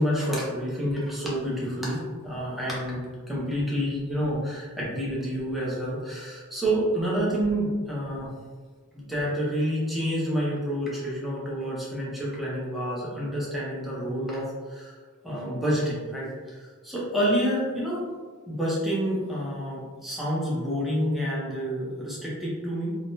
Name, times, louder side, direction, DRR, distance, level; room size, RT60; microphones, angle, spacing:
voice 1, 0.0-8.3 8.9-14.9 15.2-18.1 18.5-23.0, equal, ahead, -7 dB, 0.8 m, -28 dB
3.4 x 2.2 x 2.6 m, 1.5 s
head